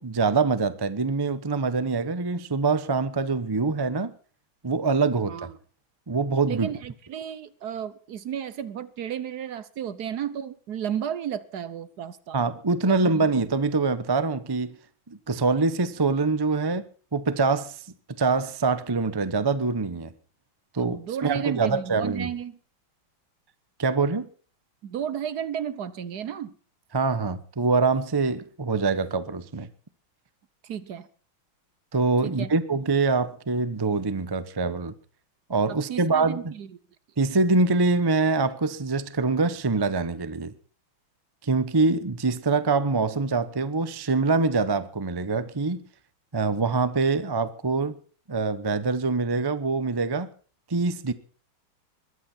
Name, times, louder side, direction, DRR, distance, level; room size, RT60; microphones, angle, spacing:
voice 1, 0.0-4.1 4.6-5.3 6.1-6.7 12.3-14.8 15.1-16.8 17.1-17.8 18.2-20.1 20.7-22.3 23.8-24.3 26.9-29.7 31.9-34.9 35.5-36.4 37.2-40.5 41.4-45.8 46.3-48.0 48.3-50.3 50.7-51.1, right 4 dB, 40° right, 0.3 m, -24 dB
voice 2, 5.3-5.6 6.5-12.4 12.9-13.3 20.8-22.6 24.8-26.5 30.6-31.1 32.2-32.5 35.7-36.8, right 9 dB, 60° right, 1.3 m, -33 dB
21.0 x 14.5 x 4.4 m
omnidirectional pair, 2.3 m